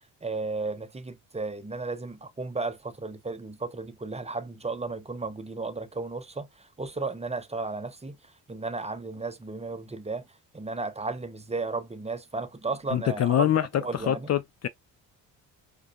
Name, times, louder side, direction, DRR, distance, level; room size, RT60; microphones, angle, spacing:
voice 1, 0.2-8.2 8.5-10.2 10.5-13.5 13.8-14.3, right 3 dB, 15° right, 0.6 m, -34 dB
voice 2, 12.9-14.7, left 11 dB, 40° left, 0.4 m, -25 dB
4.8 x 2.4 x 2.2 m
supercardioid pair, 55°, 40 cm